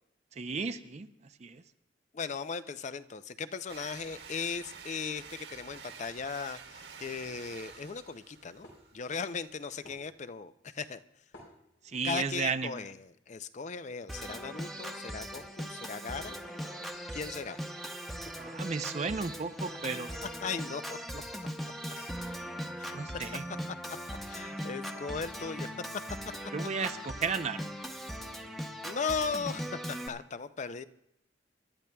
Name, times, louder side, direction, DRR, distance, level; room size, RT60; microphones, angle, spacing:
voice 1, 0.4-1.1 1.4-1.6 11.9-12.7 18.4-20.1 22.9-23.4 26.5-27.7, right 5 dB, 40° right, 9 dB, 0.5 m, -34 dB
voice 2, 2.1-11.0 12.0-16.4 17.1-17.6 19.9-21.0 22.8-23.0 23.7-24.0 24.3-26.3 28.8-30.8, left 5 dB, 40° left, 13 dB, 0.5 m, -38 dB
sound 1, 3.7-10.1, right 6 dB, 70° right, 1.5 m, -49 dB
sound 2, 8.6-9.1 9.8-10.0 11.3-12.0 12.4-12.6 13.9-14.0 14.3-14.5 15.3-16.9 17.7-17.9 18.5-18.7 19.2-20.4 21.5-22.2 22.9-25.8 26.1-26.2 26.3-26.7, left 2 dB, 80° left, 4.1 m, -55 dB
Organ, 14.1-30.1, equal, ahead, 0.9 m, -40 dB
27.5 x 12.0 x 2.3 m, 0.79 s
head